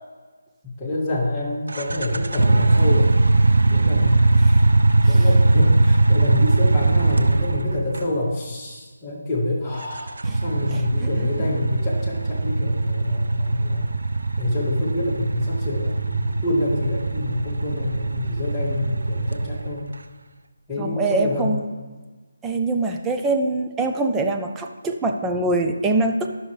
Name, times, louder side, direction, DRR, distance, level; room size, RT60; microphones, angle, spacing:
voice 1, 0.6-3.2 3.7-4.2 5.0-10.2 10.4-13.9 14.4-19.8 20.7-21.5, left 1 dB, 10° left, -9 dB, 2.3 m, -26 dB
sound 1, 1.7-8.1 9.8-19.9, right 2 dB, 70° right, 0.5 m, -20 dB
voice 2, 20.8-21.6 22.4-26.3, right 2 dB, 10° right, 3 dB, 0.5 m, -23 dB
12.0 x 6.1 x 3.3 m, 1.3 s
figure-of-eight pair, 155°, 0 cm